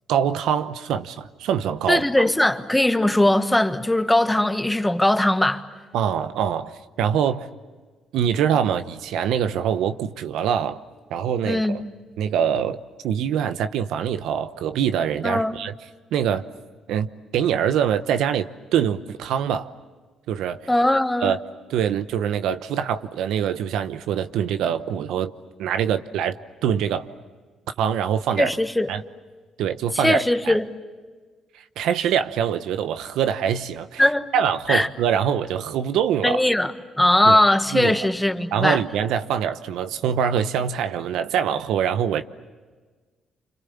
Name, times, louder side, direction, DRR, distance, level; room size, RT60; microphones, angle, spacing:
voice 1, 0.1-2.2 5.9-6.7 7.0-7.5 8.1-10.8 11.1-11.8 12.2-12.8 13.0-15.7 16.1-16.4 16.9-19.7 20.3-20.6 21.2-21.4 21.7-25.3 25.6-26.4 26.6-27.1 27.8-28.5 28.9-29.0 29.6-30.6 31.5-34.1 34.3-36.4 37.3-37.4 37.7-38.0 38.5-42.3, right 8 dB, 85° right, 0.9 m, -24 dB
voice 2, 1.9-5.6 11.4-11.8 15.2-15.5 20.7-21.3 28.4-28.9 29.9-30.7 34.0-34.3 34.7-34.9 36.2-36.7 37.0-38.8, left 1 dB, 10° left, 1.5 m, -20 dB
29.0 x 26.5 x 7.1 m
cardioid pair, 90°, 0 cm